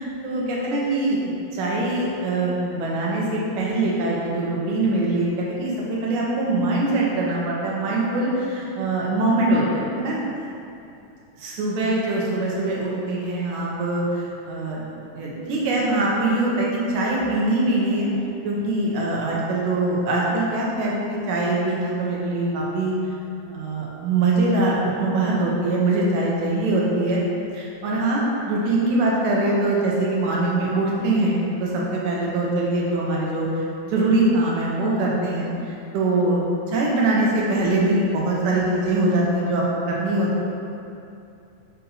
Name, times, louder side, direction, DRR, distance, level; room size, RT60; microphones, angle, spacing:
voice 1, 0.0-5.7 6.0-10.2 11.4-14.8 15.1-18.1 18.4-22.9 23.5-27.2 27.5-33.5 33.9-35.5 35.9-36.4 36.7-40.4, right 2 dB, 90° right, -4 dB, 2.5 m, -23 dB
7.0 x 2.9 x 5.5 m, 2.6 s
omnidirectional pair, 3.4 m